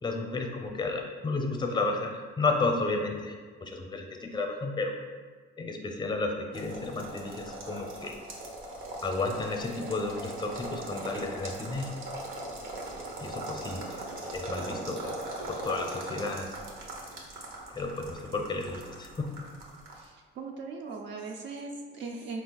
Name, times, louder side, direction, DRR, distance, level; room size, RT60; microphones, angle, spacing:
voice 1, 0.0-3.3 3.6-5.0 5.6-8.2 9.0-11.9 13.2-14.0 14.3-15.2 15.5-16.5 17.7-19.3, left 3 dB, 20° left, 3 dB, 0.6 m, -32 dB
sound 1, 6.5-20.0, right 2 dB, 90° right, 0.9 m, -40 dB
voice 2, 19.9-22.4, right 4 dB, 65° right, 1 dB, 0.4 m, -39 dB
4.3 x 2.4 x 3.9 m, 1.5 s
cardioid pair, 90°, 20 cm